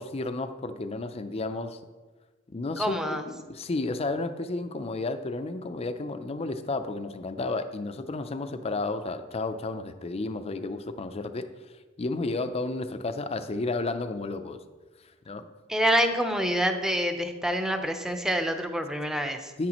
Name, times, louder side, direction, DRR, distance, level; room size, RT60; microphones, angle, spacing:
voice 1, 0.0-1.8 2.5-11.5 12.0-14.6 15.3-15.5 19.6-19.7, left 2 dB, 30° left, 9 dB, 0.5 m, -32 dB
voice 2, 2.8-3.3 15.7-19.5, equal, 5° right, 5 dB, 0.7 m, -27 dB
10.5 x 9.2 x 3.0 m, 1.3 s
head